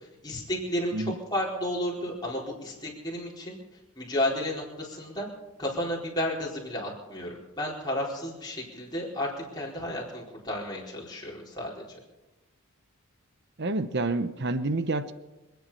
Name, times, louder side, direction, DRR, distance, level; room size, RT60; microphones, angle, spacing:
voice 1, 0.2-3.6 4.0-5.3 5.6-11.9, left 1 dB, 20° left, -4 dB, 4.5 m, -32 dB
voice 2, 13.6-15.1, right 2 dB, 50° right, 12 dB, 0.9 m, -28 dB
26.5 x 9.4 x 5.7 m, 1.1 s
head